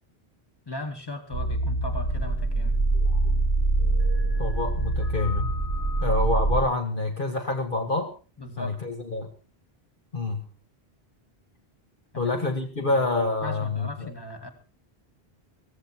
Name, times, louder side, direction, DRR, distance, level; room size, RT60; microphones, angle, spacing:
voice 1, 0.7-2.8 8.4-8.8 12.1-12.5 12.8-13.0 13.4-14.5, left 1 dB, 25° left, 5 dB, 2.5 m, -37 dB
sound 1, 1.3-6.6, right 2 dB, 85° left, 6.6 m, -24 dB
voice 2, 4.4-5.5 6.0-8.1 8.6-9.3 10.1-10.4 12.2-14.1, left 2 dB, 55° left, 4 dB, 2.0 m, -27 dB
16.0 x 15.5 x 4.5 m, 0.34 s
omnidirectional pair, 1.1 m